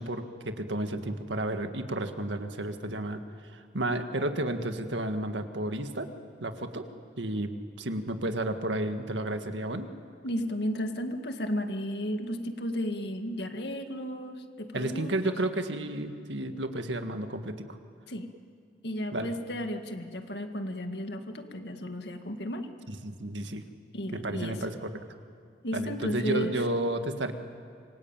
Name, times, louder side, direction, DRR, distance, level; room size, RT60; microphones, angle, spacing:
voice 1, 0.0-3.2 3.5-6.1 6.4-6.9 7.2-7.5 7.8-9.9 14.7-17.8 19.1-19.3 22.9-23.6 24.1-25.0 25.7-27.3, right 1 dB, 90° right, 7 dB, 1.9 m, -32 dB
voice 2, 10.2-15.3 18.1-18.3 18.8-22.7 23.9-24.6 25.6-26.6, equal, 65° left, 6 dB, 2.0 m, -34 dB
26.5 x 23.5 x 9.0 m, 2.2 s
head